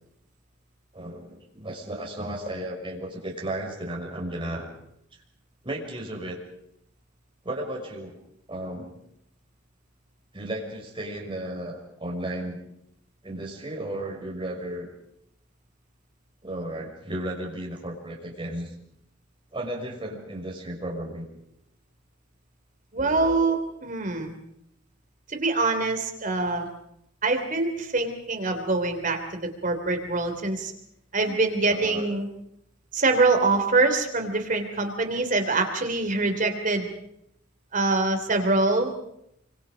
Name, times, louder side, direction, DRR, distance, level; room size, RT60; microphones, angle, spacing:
voice 1, 0.9-4.7 5.6-6.4 7.4-8.2 8.5-8.9 10.3-12.6 13.2-14.9 16.4-18.7 19.5-21.3 31.2-31.4 31.7-32.1, right 1 dB, 25° right, -1 dB, 6.2 m, -34 dB
voice 2, 22.9-24.3 25.3-26.7 27.2-30.7 31.1-32.3 32.9-36.9 37.7-38.9, right 3 dB, 45° right, 5 dB, 3.3 m, -24 dB
27.5 x 25.5 x 5.1 m, 0.76 s
head